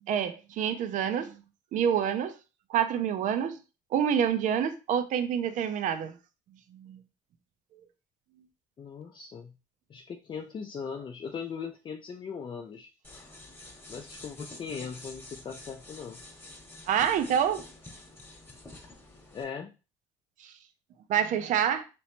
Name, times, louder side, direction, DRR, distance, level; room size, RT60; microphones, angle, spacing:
voice 1, 0.1-1.3 1.7-2.3 2.7-3.6 3.9-6.2 6.7-7.0 16.9-17.6 21.1-21.8, right 8 dB, 65° right, 0.5 m, -27 dB
voice 2, 8.8-9.5 9.9-12.9 13.9-16.2 19.3-19.7, left 6 dB, 35° left, 0.4 m, -39 dB
sound 1, 13.0-19.4, left 2 dB, 15° left, 1.1 m, -48 dB
3.0 x 3.0 x 2.9 m
supercardioid pair, 80°, 14 cm